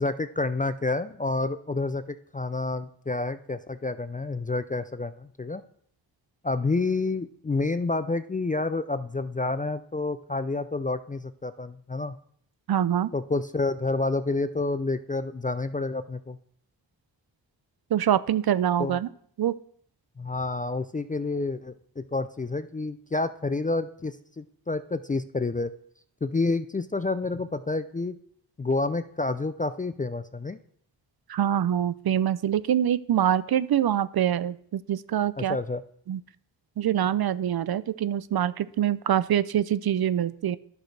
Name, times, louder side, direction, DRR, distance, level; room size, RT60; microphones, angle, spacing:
voice 1, 0.0-5.6 6.4-12.2 13.1-16.4 18.8-19.0 20.2-25.7 26.2-28.2 28.6-30.6 35.4-35.8, left 3 dB, 20° left, 12 dB, 0.3 m, -29 dB
voice 2, 12.7-13.1 17.9-19.1 19.4-19.5 31.3-35.6 36.1-36.2 36.8-40.6, right 10 dB, 55° right, 17 dB, 0.5 m, -25 dB
11.5 x 6.3 x 3.3 m, 0.63 s
cardioid pair, 60°, 45 cm